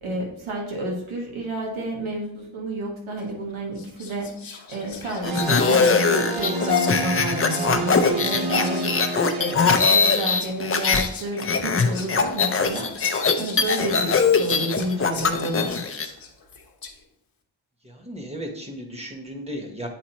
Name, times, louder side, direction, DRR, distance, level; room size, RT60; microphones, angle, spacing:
voice 1, 0.0-4.3 4.7-8.8 9.1-12.9 13.4-15.7, right 1 dB, 85° right, 0 dB, 1.5 m, -30 dB
Whispering, 3.2-3.4 3.7-17.0, left 5 dB, 50° left, 0.9 m, -40 dB
sound 1, 5.2-11.1 11.4-16.1, left 5 dB, 30° left, 0.4 m, -21 dB
sound 2, 5.2-10.4, right 3 dB, 55° right, 1.0 m, -29 dB
voice 2, 17.8-19.9, equal, 15° right, 2 dB, 1.0 m, -35 dB
9.0 x 4.1 x 2.9 m, 0.74 s
wide cardioid pair, 155°, 47 cm